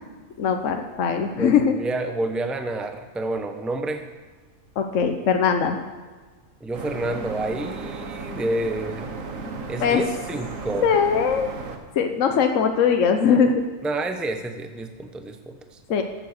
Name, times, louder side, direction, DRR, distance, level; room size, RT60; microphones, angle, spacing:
voice 1, 0.4-1.7 4.8-5.8 9.8-10.0 10.8-11.5 11.9-13.6 15.9-16.0, left 6 dB, 65° left, 5 dB, 1.2 m, -20 dB
voice 2, 1.4-4.1 6.6-9.1 9.7-10.9 13.8-15.8, right 2 dB, ahead, 6 dB, 0.6 m, -29 dB
sound 1, 6.7-11.8, right 3 dB, 70° right, 1.5 m, -35 dB
14.0 x 7.7 x 6.5 m, 1.4 s
omnidirectional pair, 1.5 m